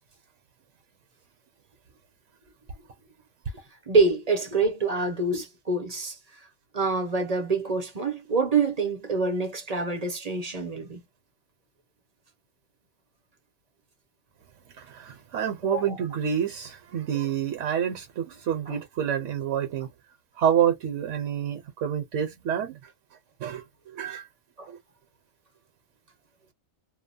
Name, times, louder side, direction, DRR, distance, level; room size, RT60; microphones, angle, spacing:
voice 1, 3.9-6.2 6.7-11.0 15.6-16.0 18.7-18.8 24.6-24.7, right 3 dB, 35° right, 0.7 m, -26 dB
voice 2, 14.8-19.9 20.4-22.8 23.4-24.2 24.7-24.8, right 9 dB, 70° right, 1.0 m, -28 dB
2.8 x 2.1 x 2.6 m
omnidirectional pair, 1.4 m